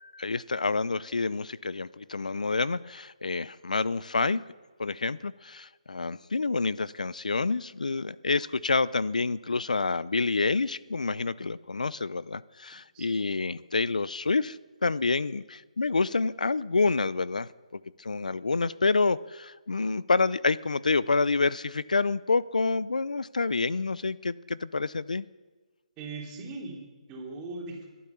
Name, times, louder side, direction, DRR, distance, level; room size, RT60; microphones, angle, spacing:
voice 1, 0.0-4.4 4.8-25.3, left 3 dB, 85° left, 20 dB, 0.5 m, -28 dB
voice 2, 26.0-27.9, right 3 dB, 20° right, 0 dB, 3.0 m, -39 dB
22.5 x 8.6 x 6.9 m, 1.3 s
hypercardioid pair, 155°, 4 cm